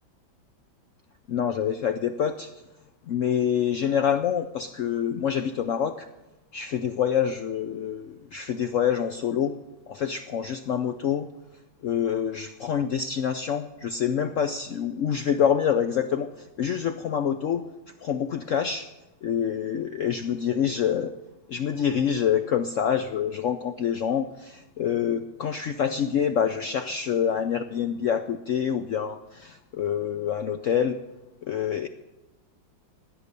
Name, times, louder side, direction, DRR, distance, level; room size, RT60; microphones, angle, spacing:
voice 1, 1.3-2.5 3.1-6.1 6.5-9.5 9.9-11.3 11.8-17.7 18.0-18.9 19.2-21.1 21.5-31.0 31.4-31.9, left 8 dB, 75° left, 9 dB, 0.7 m, -26 dB
16.0 x 9.8 x 6.7 m, 1.1 s
omnidirectional pair, 2.0 m